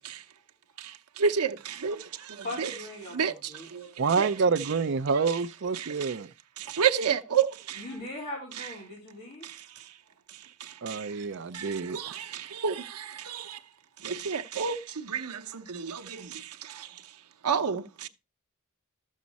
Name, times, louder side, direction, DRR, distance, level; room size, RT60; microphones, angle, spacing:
voice 1, 1.2-2.0 2.6-2.7 3.1-3.3 3.7-3.9 4.2-4.3 5.7-6.1 6.6-7.8 10.9-11.0 11.5-13.6 14.0-16.4 17.4-18.1, right 7 dB, 85° right, 0.8 m, -29 dB
voice 2, 2.4-3.9 7.7-9.5, left 1 dB, 45° left, 3.4 m, -40 dB
voice 3, 4.0-6.3 10.8-12.0, right 5 dB, 55° right, 0.5 m, -27 dB
13.0 x 7.4 x 4.0 m
head